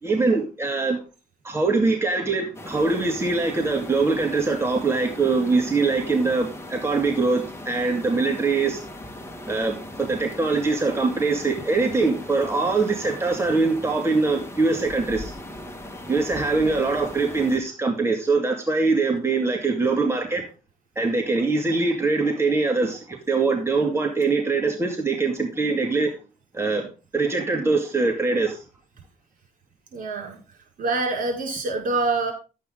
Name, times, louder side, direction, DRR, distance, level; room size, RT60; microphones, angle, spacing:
voice 1, 0.0-1.0 1.4-8.8 9.5-15.3 16.1-20.5 21.0-26.1 26.5-26.9 27.1-28.6, right 3 dB, 15° right, 1 dB, 2.2 m, -23 dB
sound 1, 2.5-17.6, left 1 dB, 15° left, 2.2 m, -39 dB
voice 2, 16.6-16.9 29.9-30.4 30.8-32.3, right 3 dB, 65° right, 1 dB, 5.6 m, -26 dB
11.5 x 8.5 x 3.9 m, 0.31 s
cardioid pair, 105°, 15 cm